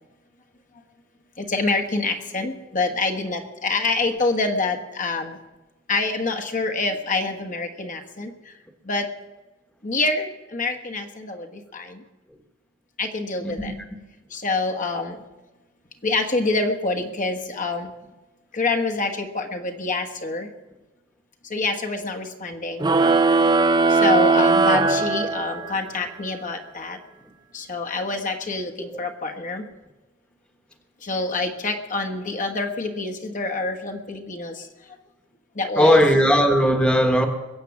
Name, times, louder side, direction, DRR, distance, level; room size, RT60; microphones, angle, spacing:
voice 1, 1.4-5.4 5.9-8.5 8.8-9.1 9.8-12.0 13.0-13.7 14.3-15.2 16.0-17.9 18.5-20.5 21.4-23.0 23.9-27.0 27.5-29.7 31.0-34.7 35.5-36.0, left 3 dB, 40° left, 1.3 m, -26 dB
voice 2, 13.4-13.7 28.9-29.0 35.8-37.3, equal, 5° left, 1.3 m, -18 dB
sound 1, 22.8-25.8, right 3 dB, 20° right, 0.5 m, -18 dB
22.0 x 8.4 x 7.3 m
head